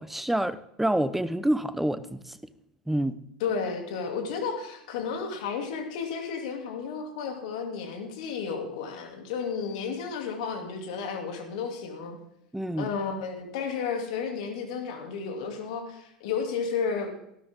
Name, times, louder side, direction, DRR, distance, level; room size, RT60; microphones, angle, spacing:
voice 1, 0.0-2.4 2.9-3.2 12.5-12.9, right 1 dB, 5° right, 13 dB, 0.9 m, -27 dB
voice 2, 3.4-12.2 12.8-17.1, left 5 dB, 70° left, 4 dB, 2.8 m, -32 dB
16.0 x 12.0 x 3.7 m, 0.78 s
hypercardioid pair, 85°, 4 cm